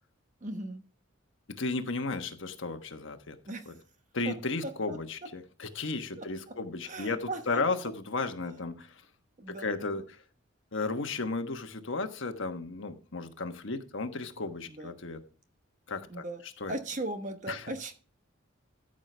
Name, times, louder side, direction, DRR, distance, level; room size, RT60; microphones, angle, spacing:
voice 1, 0.4-0.8 3.5-3.7 4.2-4.3 4.6-5.3 6.2-6.6 6.8-7.6 9.4-10.1 14.7-14.9 16.1-16.4 16.7-17.9, right 2 dB, 35° right, 7 dB, 1.0 m, -38 dB
voice 2, 1.6-3.4 3.7-3.8 4.1-9.0 9.5-10.0 10.7-15.2 15.9-16.2 16.6-16.7 17.5-17.7, left 3 dB, 60° left, 7 dB, 1.2 m, -34 dB
13.5 x 6.4 x 3.4 m, 0.40 s
head